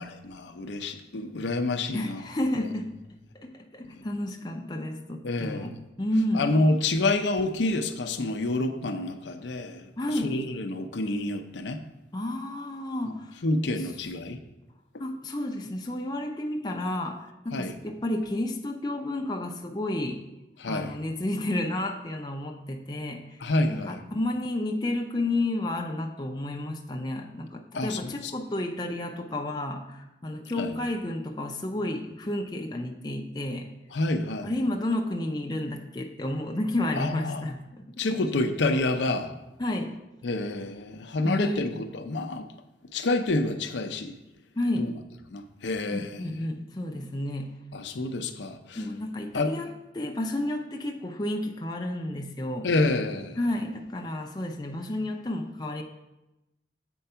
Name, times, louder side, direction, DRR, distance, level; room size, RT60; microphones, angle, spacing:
voice 1, 0.0-2.2 2.6-2.7 5.2-5.7 6.3-9.8 10.2-11.8 13.4-14.4 17.5-17.7 20.6-20.9 23.4-24.0 27.7-28.3 30.6-30.7 33.9-34.5 37.0-37.5 38.0-39.3 40.2-42.4 42.9-44.1 44.8-44.9 45.3-46.2 47.7-48.8 49.3-49.5 52.6-53.4, left 2 dB, 75° left, 6 dB, 0.6 m, -28 dB
voice 2, 1.9-2.9 3.3-6.5 10.0-10.3 12.1-13.3 13.7-13.9 15.0-20.2 20.6-23.2 23.7-33.7 34.4-37.9 38.1-38.2 39.6-40.0 41.2-41.6 44.6-44.9 45.9-47.5 48.8-52.7 53.4-55.8, left 1 dB, 20° left, 2 dB, 0.5 m, -31 dB
7.8 x 4.6 x 5.6 m, 0.96 s
head